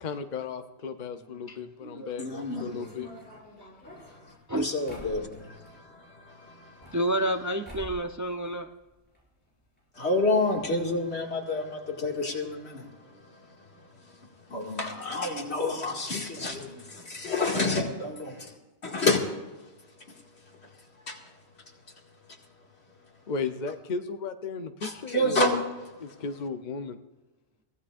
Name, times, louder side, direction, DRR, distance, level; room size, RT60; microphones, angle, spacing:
voice 1, 0.0-2.3 2.6-3.1 23.3-25.5 26.0-27.0, left 5 dB, 50° left, 0.8 m, -35 dB
voice 2, 1.5-2.9 4.5-4.7 6.9-8.7, right 1 dB, 30° right, 0.3 m, -31 dB
voice 3, 2.2-2.8 3.9-6.9 10.0-12.9 14.5-18.5 18.8-19.2 21.1-21.2 24.8-25.6, left 2 dB, 85° left, 2.4 m, -29 dB
sound 1, 2.8-5.7 6.6-7.4 7.6-8.1 8.4-9.2 9.5-9.6 9.8-9.9 10.6-10.7 11.0-11.1, equal, 10° left, 6.4 m, -47 dB
23.5 x 16.0 x 2.5 m
omnidirectional pair, 1.1 m